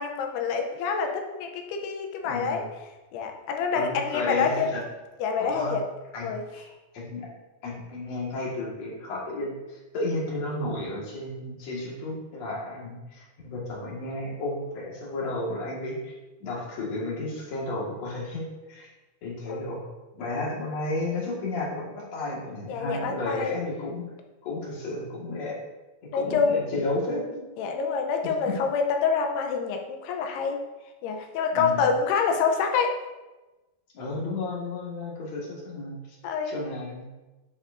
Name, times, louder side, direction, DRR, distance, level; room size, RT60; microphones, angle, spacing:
voice 1, 0.0-2.7 3.1-4.7 5.2-5.8 6.2-6.4 19.5-19.6 22.7-23.6 26.1-26.6 27.6-30.6 31.0-33.0 36.2-36.6, left 5 dB, 85° left, 3 dB, 2.7 m, -26 dB
voice 2, 2.2-2.6 3.7-4.8 5.4-5.7 6.1-7.3 7.6-16.1 16.4-18.9 19.2-19.9 20.2-24.0 24.4-25.6 26.1-27.4 28.2-28.6 31.5-31.9 33.9-36.2 36.4-37.1, left 2 dB, 50° left, -4 dB, 2.5 m, -33 dB
9.6 x 7.1 x 2.6 m, 1.1 s
omnidirectional pair, 4.8 m